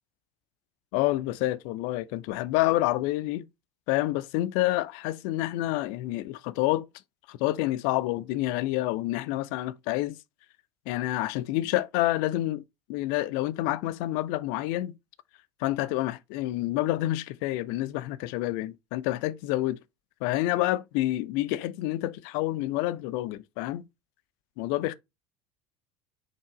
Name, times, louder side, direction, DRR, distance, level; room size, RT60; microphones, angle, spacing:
voice 1, 0.9-3.5 3.9-6.9 7.3-10.2 10.9-12.6 12.9-14.9 15.6-19.8 20.2-23.8 24.6-24.9, left 16 dB, 55° left, 0.4 m, -28 dB
4.7 x 2.9 x 3.8 m
figure-of-eight pair, 75°, 17 cm